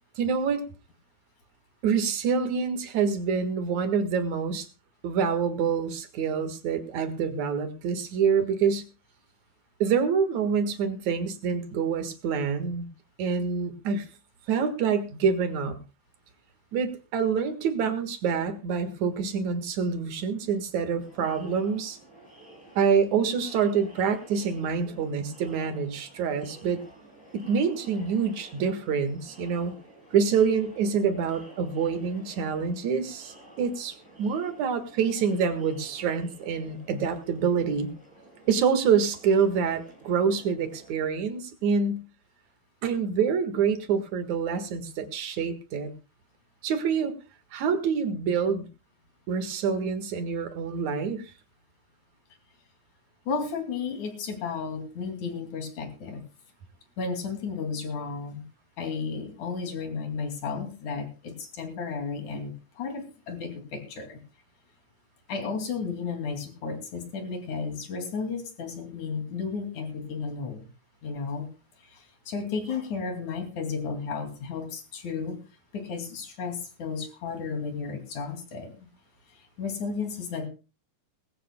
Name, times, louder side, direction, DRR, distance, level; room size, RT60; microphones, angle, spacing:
voice 1, 0.2-0.6 1.8-4.7 5.0-8.8 9.8-12.9 13.2-14.1 14.5-15.8 16.7-22.0 22.8-26.8 27.3-29.7 30.1-37.9 38.5-42.0 42.8-45.9 46.6-47.1 47.5-48.7 49.3-51.3, right 6 dB, 55° right, 2.7 m, -26 dB
Crowd, 21.0-40.9, right 1 dB, 5° left, 7.6 m, -51 dB
voice 2, 53.3-56.2 57.0-58.4 58.8-64.2 65.3-70.7 71.0-71.5 71.8-75.4 75.7-78.7 79.3-80.5, left 5 dB, 55° left, 3.9 m, -33 dB
20.5 x 16.0 x 2.3 m
omnidirectional pair, 4.4 m